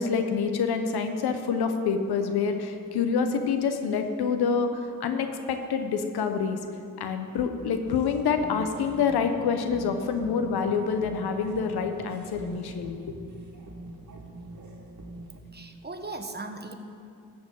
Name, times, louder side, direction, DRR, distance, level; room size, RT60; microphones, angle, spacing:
voice 1, 0.0-6.6 7.0-13.2, left 6 dB, 85° left, 7 dB, 0.9 m, -27 dB
sound 1, 7.9-15.4, right 2 dB, 50° right, 1.9 m, -44 dB
voice 2, 15.5-16.7, right 3 dB, 25° right, 5 dB, 1.3 m, -38 dB
14.0 x 5.0 x 8.2 m, 2.5 s
supercardioid pair, 45°, 37 cm